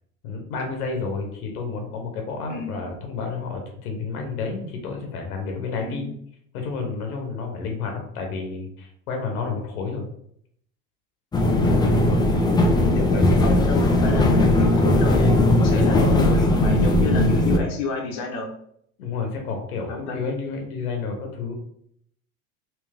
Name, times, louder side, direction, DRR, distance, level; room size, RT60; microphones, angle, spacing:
voice 1, 0.2-6.1 6.5-10.0 15.7-16.1 19.0-21.5, left 4 dB, 90° left, 3 dB, 1.0 m, -30 dB
voice 2, 5.8-6.1 11.6-11.8 12.4-18.5 19.9-20.2, left 3 dB, 60° left, 1 dB, 0.9 m, -30 dB
sound 1, 11.3-17.6, left 1 dB, 10° left, 0.3 m, -18 dB
3.3 x 2.9 x 3.4 m, 0.69 s
supercardioid pair, 95°, 43 cm